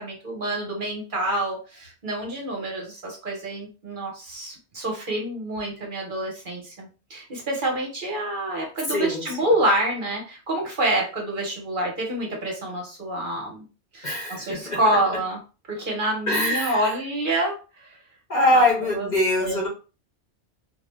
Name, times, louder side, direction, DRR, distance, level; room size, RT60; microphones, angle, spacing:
voice 1, 0.0-13.6 13.9-15.4 15.7-18.0 18.5-18.6 18.9-19.1 19.4-19.6, right 1 dB, 50° right, 0.9 m, -27 dB
voice 2, 8.9-9.3 14.0-14.8 16.3-16.9 18.3-19.7, left 1 dB, 45° left, 0.7 m, -23 dB
2.4 x 2.1 x 3.2 m
omnidirectional pair, 1.2 m